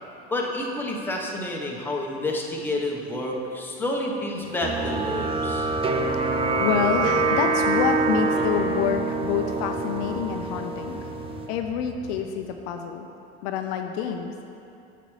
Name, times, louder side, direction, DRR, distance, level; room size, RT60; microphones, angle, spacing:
voice 1, 0.3-5.7, left 1 dB, 5° left, -2 dB, 1.0 m, -29 dB
sound 1, 4.6-11.5, right 3 dB, 15° right, 0.4 m, -25 dB
sound 2, 4.6-12.2, equal, 85° right, 1.6 m, -40 dB
voice 2, 6.6-11.1 11.5-13.1 13.4-14.3, left 7 dB, 65° left, 5 dB, 0.6 m, -27 dB
8.1 x 6.7 x 3.2 m, 2.7 s
hypercardioid pair, 90°, 33 cm